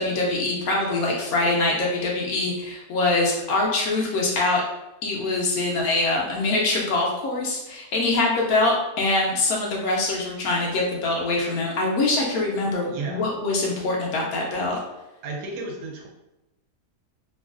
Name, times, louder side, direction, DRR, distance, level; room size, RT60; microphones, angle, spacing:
voice 1, 0.0-4.6 5.0-14.8, left 2 dB, 70° left, -2 dB, 1.0 m, -24 dB
voice 2, 12.9-13.2 15.2-16.1, right 3 dB, 80° right, 0 dB, 1.2 m, -33 dB
2.9 x 2.4 x 2.3 m, 0.95 s
omnidirectional pair, 1.7 m